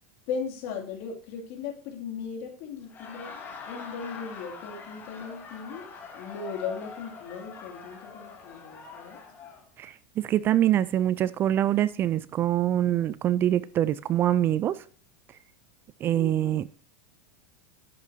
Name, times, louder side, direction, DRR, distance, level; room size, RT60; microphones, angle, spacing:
voice 1, 0.3-3.3 3.7-5.9 6.1-9.2 16.1-16.6, left 6 dB, 60° left, 2.7 m, -37 dB
Laughter, 2.8-9.6, left 5 dB, 30° left, 2.5 m, -44 dB
voice 2, 9.8-14.8 16.0-16.7, right 12 dB, 30° right, 0.4 m, -24 dB
10.5 x 8.2 x 2.8 m
supercardioid pair, 125°, 7 cm